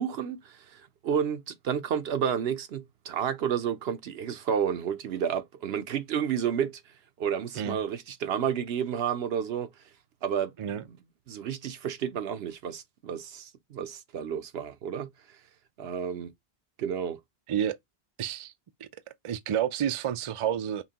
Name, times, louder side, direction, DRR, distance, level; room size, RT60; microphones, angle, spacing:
voice 1, 0.0-6.8 7.2-9.7 10.2-10.5 11.3-15.1 15.8-16.3 16.8-17.2, right 8 dB, 80° right, 0.9 m, -31 dB
voice 2, 18.2-18.5 18.8-18.9 19.2-20.8, right 9 dB, 55° right, 0.3 m, -29 dB
5.7 x 2.1 x 2.8 m
omnidirectional pair, 1.0 m